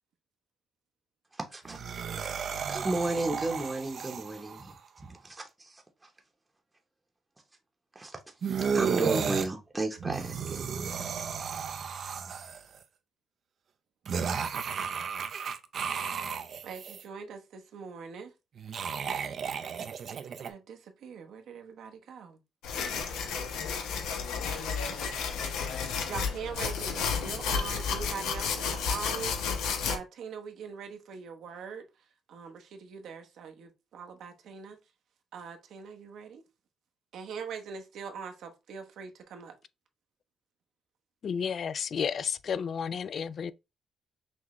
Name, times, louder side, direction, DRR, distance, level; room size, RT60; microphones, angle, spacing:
voice 1, 1.5-2.0 2.7-5.8 7.9-8.2 8.7-10.7 11.0-11.1, right 2 dB, 20° right, 0.9 m, -33 dB
sound 1, 1.7-4.7 8.4-9.5 10.0-12.8 14.1-17.0 18.6-20.5, right 6 dB, 55° right, 0.5 m, -33 dB
voice 2, 16.6-18.3 20.1-22.4 24.9-25.0 26.1-31.8 32.3-34.8 35.3-36.4 37.1-39.6, right 6 dB, 75° right, 0.9 m, -42 dB
sound 2, 22.6-30.0, left 6 dB, 85° left, 0.8 m, -32 dB
voice 3, 41.2-43.5, left 7 dB, 55° left, 0.3 m, -32 dB
6.1 x 2.3 x 3.1 m
cardioid pair, 90°, 0 cm